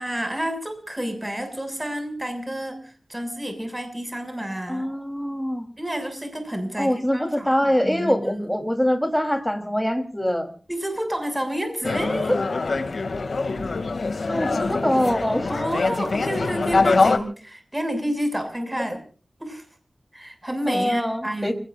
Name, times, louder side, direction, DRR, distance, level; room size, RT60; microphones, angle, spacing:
voice 1, 0.0-4.9 5.8-7.5 7.8-8.5 10.7-12.3 15.5-19.0 19.4-19.6 20.1-21.5, equal, 15° right, 6 dB, 6.8 m, -29 dB
voice 2, 4.7-5.7 6.8-10.5 12.3-12.4 14.3-15.5 20.7-21.5, equal, 5° left, 5 dB, 3.9 m, -23 dB
sound 1, 11.8-17.2, left 3 dB, 85° left, 2.6 m, -23 dB
29.5 x 18.5 x 2.6 m, 0.43 s
wide cardioid pair, 60°, 0 cm